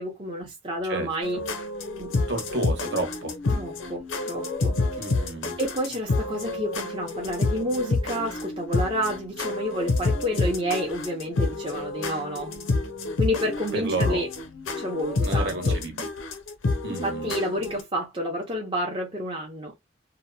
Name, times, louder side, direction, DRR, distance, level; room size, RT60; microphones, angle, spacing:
voice 1, 0.0-1.4 2.0-2.1 3.5-4.8 5.6-12.5 13.2-14.3 14.8-15.8 16.9-19.7, equal, 25° right, 0.6 m, -30 dB
sound 1, 1.2-17.8, left 3 dB, 85° left, 0.5 m, -28 dB
voice 2, 2.3-3.3 5.0-5.6 13.7-14.2 15.2-16.1 16.8-17.3, right 2 dB, 60° right, 1.0 m, -31 dB
2.8 x 2.1 x 2.6 m
head